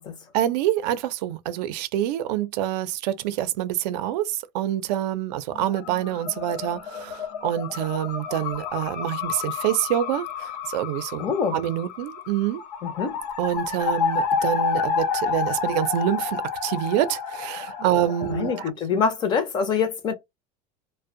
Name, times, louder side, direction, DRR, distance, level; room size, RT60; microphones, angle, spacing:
voice 1, 0.3-11.2 11.5-12.6 13.4-18.5, right 12 dB, 75° right, 0.5 m, -26 dB
sound 1, 5.5-18.7, left 6 dB, 85° left, 0.8 m, -30 dB
voice 2, 11.2-11.6 12.8-13.2 18.3-20.1, left 6 dB, 20° left, 0.4 m, -25 dB
2.5 x 2.1 x 2.5 m
cardioid pair, 180°, 21 cm